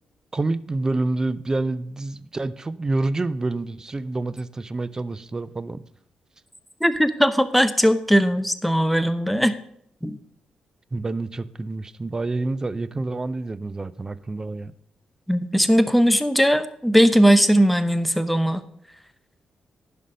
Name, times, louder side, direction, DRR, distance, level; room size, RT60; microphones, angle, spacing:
voice 1, 0.3-5.8 10.9-14.7, right 2 dB, 25° right, 0.5 m, -27 dB
voice 2, 6.8-9.5 10.0-10.2 15.3-18.7, equal, ahead, 0.8 m, -19 dB
11.0 x 5.3 x 6.4 m
cardioid pair, 80°, 2 cm